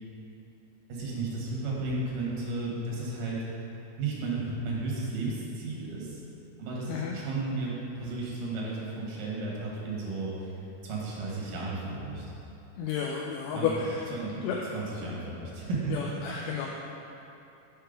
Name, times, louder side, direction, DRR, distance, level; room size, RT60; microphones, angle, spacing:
voice 1, 0.9-3.4 4.0-6.2 6.6-10.5 10.8-12.2 13.5-13.7 14.1-14.4 14.7-16.0, right 3 dB, 80° right, -4 dB, 2.9 m, -33 dB
voice 2, 12.8-14.0 14.4-14.6 15.9-16.7, left 7 dB, 85° left, -1 dB, 2.1 m, -31 dB
7.4 x 4.5 x 5.0 m, 2.8 s
omnidirectional pair, 3.7 m